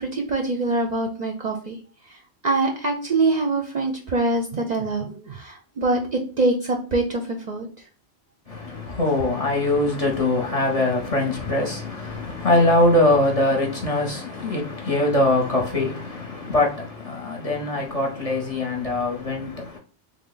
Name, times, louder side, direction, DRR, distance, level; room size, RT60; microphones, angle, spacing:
voice 1, 0.0-1.8 2.4-7.2 7.5-7.7, right 2 dB, 50° right, 0.6 m, -24 dB
voice 2, 8.5-19.8, left 1 dB, 40° left, 0.7 m, -22 dB
3.4 x 2.1 x 3.8 m
omnidirectional pair, 1.1 m